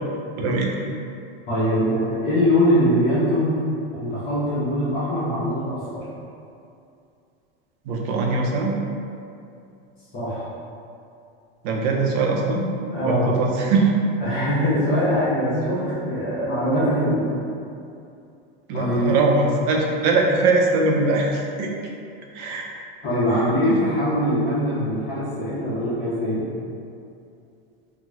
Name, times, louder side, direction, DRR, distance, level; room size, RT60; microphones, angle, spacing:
voice 1, 0.1-0.7 7.9-8.8 11.6-12.7 13.0-13.9 18.7-21.7 22.3-22.7 23.7-23.9, right 3 dB, 45° right, 0 dB, 0.4 m, -21 dB
voice 2, 1.5-3.5 3.9-6.0 10.1-10.5 12.9-13.3 14.2-17.4 18.7-19.2 23.0-26.6, equal, 30° left, -11 dB, 0.9 m, -22 dB
2.9 x 2.1 x 3.5 m, 2.5 s
supercardioid pair, 160°, 30 cm